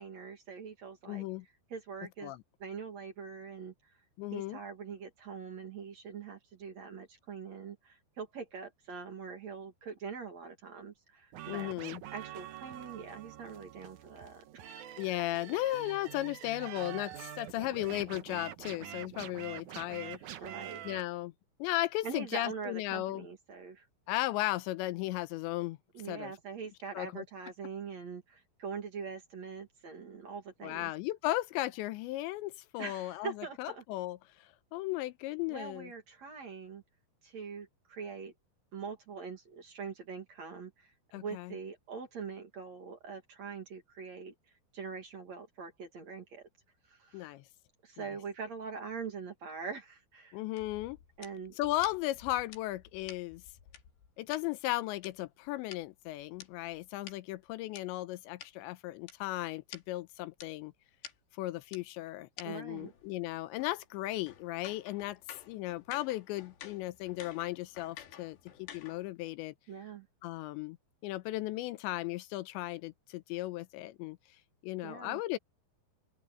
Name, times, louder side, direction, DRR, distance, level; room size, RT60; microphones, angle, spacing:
voice 1, 0.0-1.2 1.7-2.3 2.6-4.0 4.3-11.7 12.1-14.9 20.1-20.8 22.0-23.9 25.9-30.9 32.8-33.8 35.5-36.8 37.2-38.3 38.7-44.3 44.7-46.5 46.9-47.3 47.8-50.4 51.2-51.6 62.4-62.9 69.7-70.1 74.8-75.2, right 5 dB, 45° right, 2.7 m, -43 dB
voice 2, 1.1-1.5 2.2-2.4 4.2-4.6 11.5-12.0 15.0-20.2 20.8-21.3 21.6-23.3 24.1-25.8 26.1-26.3 26.9-27.3 30.6-35.9 41.1-41.5 47.1-47.4 48.0-48.1 50.3-51.0 51.6-53.4 54.2-60.7 61.4-65.2 65.5-69.5 70.2-70.8 71.0-74.2 74.6-75.4, left 17 dB, 90° left, 3.1 m, -36 dB
sound 1, 11.3-21.0, right 12 dB, 75° right, 1.8 m, -46 dB
sound 2, 50.6-54.4 55.0-57.8 58.4-58.5 59.1-59.2 59.4-59.5 59.7-59.9 60.4-60.5 61.0-61.1 61.7-61.8 62.4-62.5 62.8-69.1, left 8 dB, 75° left, 4.6 m, -51 dB
open air
omnidirectional pair, 5.1 m